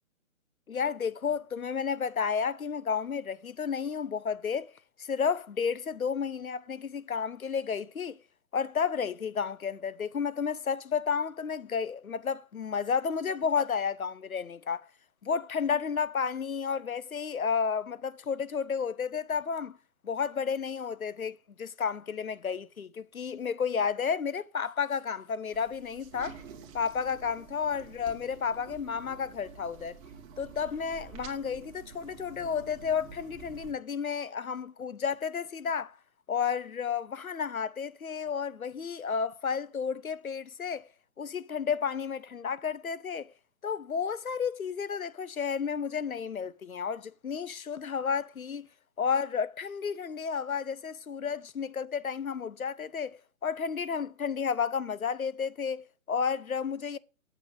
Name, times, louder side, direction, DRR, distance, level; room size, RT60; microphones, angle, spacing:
voice 1, 0.7-4.7 5.0-8.2 8.5-14.9 15.2-19.8 20.0-26.4 26.7-30.0 30.4-35.9 36.3-40.8 41.2-43.3 43.6-48.7 49.0-57.0, left 6 dB, 85° left, 0.9 m, -32 dB
sound 1, 25.5-33.7, right 6 dB, 20° right, 1.5 m, -49 dB
7.8 x 6.1 x 7.9 m
figure-of-eight pair, 140°, 41 cm